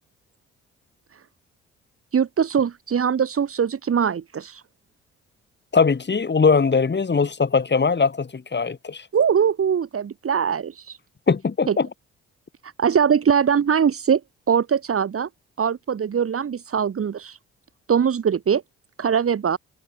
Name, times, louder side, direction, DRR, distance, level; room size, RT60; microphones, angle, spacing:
voice 1, 2.1-4.6 9.1-11.0 11.7-11.8 12.6-14.2 14.5-15.3 15.6-17.4 17.9-18.6 19.0-19.6, right 7 dB, 50° right, 3.0 m, -21 dB
voice 2, 5.7-9.0 11.3-11.9, left 5 dB, 40° left, 5.0 m, -20 dB
hypercardioid pair, 50°, 29 cm